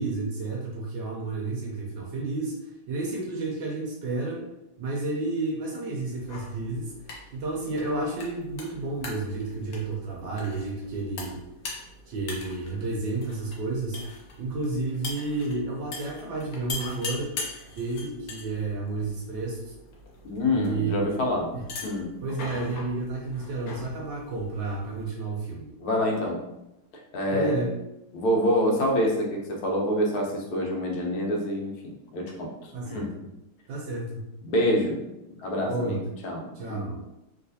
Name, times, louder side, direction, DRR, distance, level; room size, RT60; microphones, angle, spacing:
voice 1, 0.0-4.4 4.8-6.9 7.3-11.4 12.1-14.0 14.4-17.3 17.7-19.7 20.5-21.6 22.2-25.7 27.3-27.7 32.7-33.3 33.7-34.2 35.6-36.0 36.5-37.0, right 3 dB, 70° right, -1 dB, 1.1 m, -31 dB
sound 1, 6.2-25.0, left 3 dB, 70° left, 0.8 m, -42 dB
voice 2, 20.2-21.5 21.8-22.1 25.8-26.4 27.1-27.6 28.1-33.1 34.4-35.0 35.4-36.0 36.2-36.8, left 1 dB, 85° left, 0 dB, 1.6 m, -26 dB
3.1 x 3.0 x 2.6 m, 0.90 s
omnidirectional pair, 2.3 m